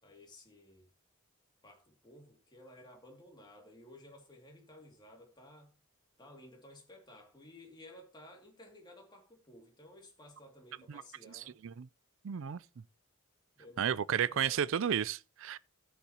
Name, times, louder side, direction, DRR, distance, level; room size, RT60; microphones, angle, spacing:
voice 1, 0.0-0.9 1.6-5.7 6.2-11.6 13.6-14.6, left 1 dB, 20° left, 2.4 m, -55 dB
voice 2, 11.3-11.9 12.2-12.6 13.8-15.6, right 8 dB, 65° right, 0.4 m, -33 dB
15.0 x 7.2 x 2.9 m
head